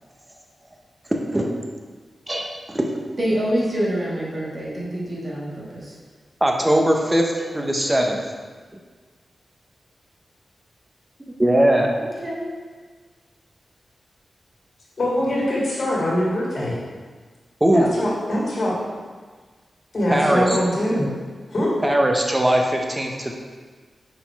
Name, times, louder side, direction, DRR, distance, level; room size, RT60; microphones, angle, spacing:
voice 1, 1.1-1.6 2.3-2.9 6.4-8.2 11.4-11.9 17.6-18.0 20.1-20.6 21.8-23.3, right 1 dB, 15° right, 1 dB, 0.9 m, -20 dB
voice 2, 3.2-5.6 12.0-12.5, equal, 45° right, -6 dB, 1.7 m, -25 dB
voice 3, 15.0-16.7 17.7-18.8 19.9-21.1 21.5-21.8, left 1 dB, 55° left, -6 dB, 1.8 m, -23 dB
6.4 x 4.2 x 4.6 m, 1.5 s
wide cardioid pair, 80°, 0 cm